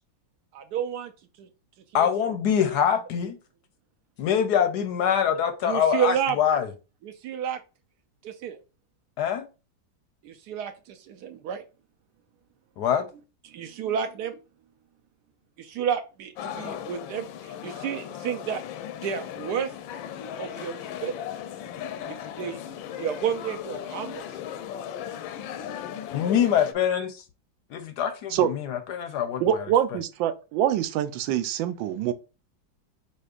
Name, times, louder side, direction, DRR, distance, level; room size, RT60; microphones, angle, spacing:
voice 1, 0.5-1.1 1.4-1.5 2.0-2.3 5.6-6.4 7.0-7.6 8.2-8.6 10.2-11.6 13.5-14.4 15.6-18.6 19.0-19.7 20.4-21.1 22.4-22.6 23.0-24.3, right 8 dB, 75° right, 1.0 m, -30 dB
voice 2, 1.9-3.4 4.2-6.7 9.2-9.5 12.8-13.1 26.1-27.1 27.7-29.7, left 8 dB, 70° left, 1.0 m, -24 dB
sound 1, 16.4-26.7, left 9 dB, 90° left, 1.3 m, -37 dB
voice 3, 29.4-32.1, right 10 dB, 90° right, 1.3 m, -25 dB
5.2 x 4.2 x 2.4 m
omnidirectional pair, 2.0 m